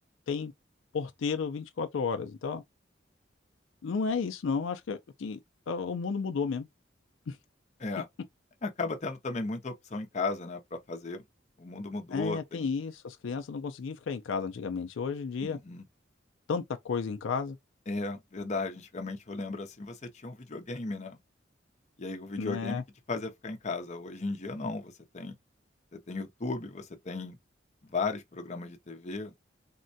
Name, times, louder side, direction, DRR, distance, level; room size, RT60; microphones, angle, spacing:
voice 1, 0.9-2.6 3.8-5.4 5.7-6.7 7.3-7.4 12.1-15.6 16.5-17.6 22.4-22.8, left 5 dB, 80° left, 0.4 m, -32 dB
voice 2, 8.6-10.6 10.9-11.2 11.6-12.7 15.4-15.8 17.9-21.2 22.0-22.8 23.1-25.4 25.9-27.4 27.9-29.4, left 3 dB, 40° left, 0.7 m, -35 dB
3.6 x 2.1 x 2.6 m
head